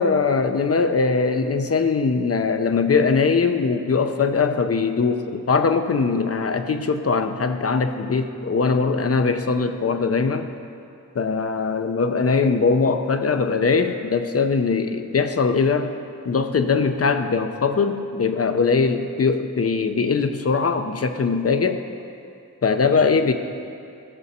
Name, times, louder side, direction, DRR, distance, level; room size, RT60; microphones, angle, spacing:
voice 1, 0.0-10.5 11.1-15.9 16.3-21.8 22.6-23.3, left 4 dB, 50° left, 8 dB, 0.6 m, -21 dB
15.0 x 6.4 x 4.2 m, 2.6 s
wide cardioid pair, 85°, 32 cm